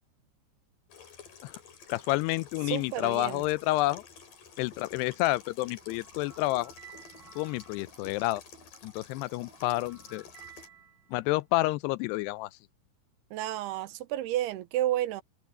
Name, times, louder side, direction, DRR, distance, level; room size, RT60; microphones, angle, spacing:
Water tap faucet / Sink (filling or washing), 0.9-10.7, left 6 dB, 55° left, 4.9 m, -51 dB
voice 1, 1.9-4.0 4.6-6.7 7.4-8.4 8.8-10.3 11.1-12.6, left 19 dB, 90° left, 2.7 m, -29 dB
voice 2, 2.7-3.4 13.3-15.2, right 13 dB, 80° right, 2.9 m, -31 dB
sound 1, 4.7-8.7 9.1-11.5, right 6 dB, 25° right, 5.4 m, -55 dB
omnidirectional pair, 4.7 m